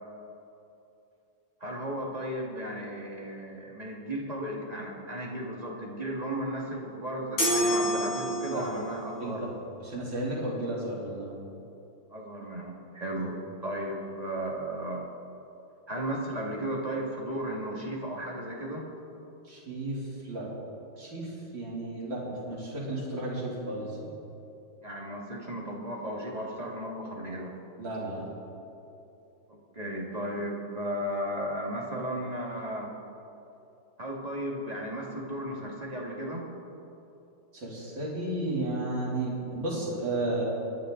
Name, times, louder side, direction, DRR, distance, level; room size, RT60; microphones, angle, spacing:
voice 1, 1.6-9.4 12.1-15.0 15.9-18.9 24.8-27.6 29.7-32.9 34.0-36.5, right 1 dB, 20° right, -2 dB, 2.0 m, -35 dB
sound 1, 7.4-8.9, equal, 80° left, 5.4 m, -27 dB
voice 2, 9.8-11.3 13.1-13.2 19.5-20.5 21.0-24.1 27.8-28.3 37.5-40.4, right 2 dB, 75° right, -6 dB, 3.9 m, -33 dB
27.5 x 10.0 x 3.9 m, 2.8 s
omnidirectional pair, 2.1 m